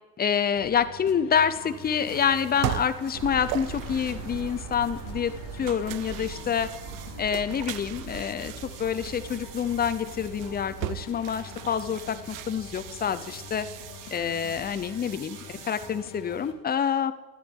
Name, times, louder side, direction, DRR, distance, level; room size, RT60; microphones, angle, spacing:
voice 1, 0.2-6.7 7.2-8.5 8.8-13.7 14.1-17.1, left 7 dB, 30° left, 11 dB, 0.6 m, -27 dB
sound 1, 0.5-16.5, left 7 dB, 70° left, 1.3 m, -46 dB
sound 2, 1.3-16.0, right 15 dB, 70° right, 0.5 m, -40 dB
sound 3, 3.1-14.6, right 7 dB, 55° right, 1.1 m, -42 dB
11.0 x 10.5 x 3.6 m, 1.2 s
cardioid pair, 105°, 33 cm